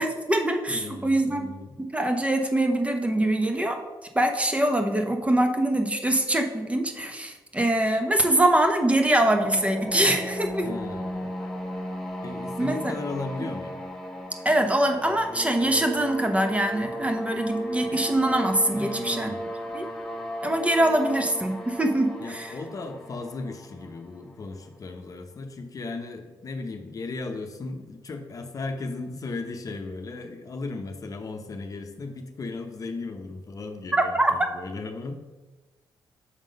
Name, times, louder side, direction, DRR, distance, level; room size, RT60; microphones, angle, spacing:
voice 1, 0.0-1.5 1.8-3.8 4.1-10.7 12.6-12.9 14.4-19.3 19.7-19.9 20.4-22.5 33.9-34.3, right 1 dB, 15° right, 5 dB, 0.8 m, -23 dB
voice 2, 0.7-1.8 10.6-11.3 12.2-13.8 18.8-19.4 22.2-35.1, left 3 dB, 45° left, 5 dB, 0.8 m, -36 dB
sound 1, 8.9-24.7, equal, 5° left, 1.5 m, -35 dB
6.5 x 3.7 x 5.2 m, 1.2 s
cardioid pair, 70°, 8 cm